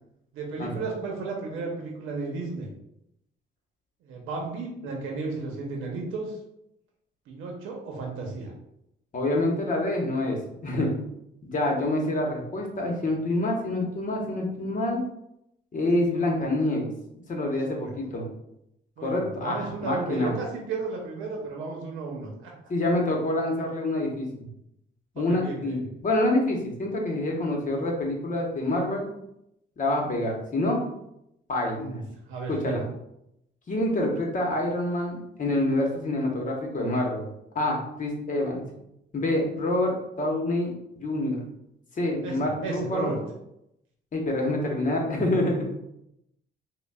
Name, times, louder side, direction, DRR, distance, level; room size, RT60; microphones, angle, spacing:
voice 1, 0.3-2.7 4.0-6.4 7.3-8.5 17.5-17.9 19.0-22.5 25.3-25.8 31.6-32.8 42.2-43.2, right 3 dB, 85° right, 0 dB, 0.8 m, -34 dB
voice 2, 9.1-10.9 11.4-15.0 15.7-16.9 17.3-18.2 19.0-20.3 22.7-24.4 25.1-29.1 29.8-30.8 31.5-32.0 32.5-32.8 33.7-37.3 37.5-38.6 39.1-40.7 41.0-41.4 42.0-43.1 44.1-45.7, left 1 dB, 40° left, 0 dB, 1.0 m, -27 dB
5.1 x 2.3 x 2.3 m, 0.81 s
cardioid pair, 90°, 20 cm